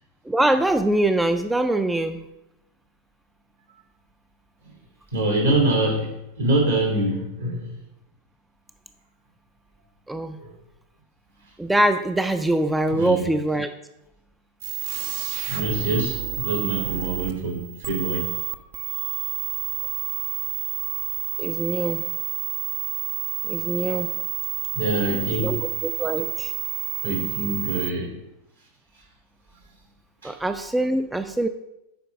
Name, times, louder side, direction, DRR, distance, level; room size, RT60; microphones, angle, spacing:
voice 1, 0.3-2.2 10.1-10.4 11.6-13.7 21.4-22.1 23.5-24.1 25.4-26.5 30.2-31.5, right 1 dB, 5° right, 9 dB, 0.4 m, -23 dB
voice 2, 5.1-7.8 10.4-10.5 12.9-13.3 15.5-18.3 24.7-25.5 27.0-28.1 30.2-30.3, right 1 dB, 70° right, 0 dB, 2.6 m, -25 dB
sound 1, 14.6-27.9, right 15 dB, 50° right, 0.6 m, -29 dB
8.5 x 4.5 x 5.0 m, 0.88 s
figure-of-eight pair, 90°, 0 cm